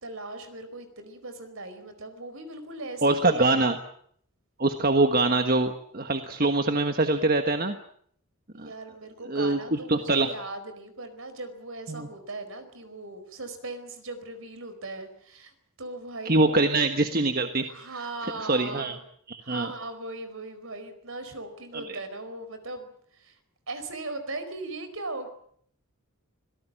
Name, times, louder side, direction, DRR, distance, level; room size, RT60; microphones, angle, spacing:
voice 1, 0.0-3.6 8.5-16.6 17.7-19.0 19.4-23.4 23.7-25.3, right 2 dB, 65° right, 9 dB, 4.7 m, -39 dB
voice 2, 3.0-3.8 4.6-7.8 8.6-8.7 9.3-10.3 11.9-12.1 16.2-17.6 18.4-18.9 19.3-19.7 21.7-22.0, right 2 dB, 40° right, 7 dB, 1.4 m, -24 dB
26.0 x 17.5 x 8.9 m, 0.65 s
head